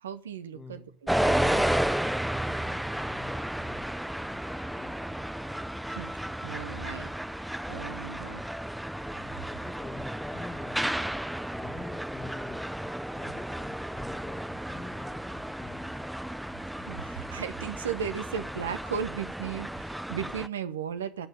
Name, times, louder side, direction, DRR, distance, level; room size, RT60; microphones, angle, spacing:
voice 1, 0.0-1.7 5.9-6.1 6.4-7.1 7.7-8.4 16.9-21.3, right 7 dB, 85° right, 0.7 m, -36 dB
voice 2, 0.5-0.9 2.4-3.9 4.3-5.2 9.4-11.1 11.5-12.7 13.1-16.1, left 3 dB, 30° left, 1.4 m, -46 dB
sound 1, 1.1-20.5, right 1 dB, 5° right, 0.6 m, -33 dB
11.0 x 4.6 x 7.0 m
hypercardioid pair, 55°, 0 cm